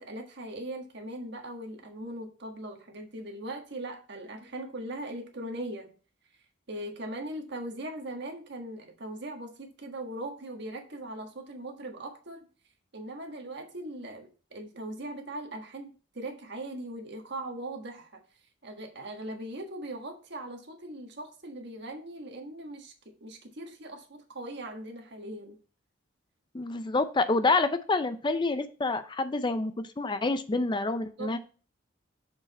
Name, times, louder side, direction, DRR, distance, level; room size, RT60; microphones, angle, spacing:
voice 1, 0.0-5.9 6.7-12.5 12.9-18.1 18.6-22.9 23.2-25.6 31.2-31.4, right 1 dB, 60° right, 3 dB, 1.5 m, -40 dB
voice 2, 26.5-29.7 30.0-31.4, left 3 dB, 25° left, 11 dB, 0.5 m, -27 dB
6.4 x 5.0 x 4.1 m, 0.37 s
head